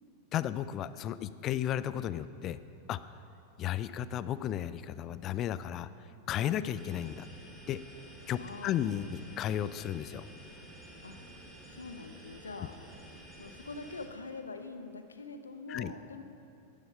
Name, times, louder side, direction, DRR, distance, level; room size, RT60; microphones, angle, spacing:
voice 1, 0.3-2.6 2.9-3.2 3.6-5.9 6.3-7.3 7.7-7.8 8.3-10.3 15.7-15.9, left 11 dB, 35° left, 15 dB, 0.4 m, -34 dB
sound 1, 6.7-14.1, right 1 dB, 15° right, 2.2 m, -51 dB
voice 2, 8.4-9.0 11.0-11.2 11.7-12.7 13.4-16.2, left 3 dB, 75° left, 8 dB, 0.8 m, -44 dB
11.0 x 10.0 x 5.5 m, 2.6 s
figure-of-eight pair, 90°, 0 cm